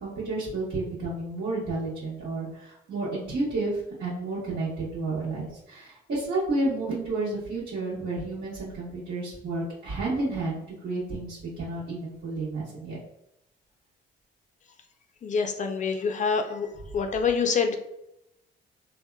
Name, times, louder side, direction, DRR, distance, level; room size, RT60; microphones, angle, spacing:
voice 1, 0.0-13.0, right 2 dB, 65° right, -10 dB, 1.1 m, -31 dB
voice 2, 15.2-16.7 16.9-17.8, left 5 dB, 40° left, 6 dB, 0.4 m, -26 dB
2.9 x 2.1 x 2.2 m, 0.84 s
cardioid pair, 90°, 20 cm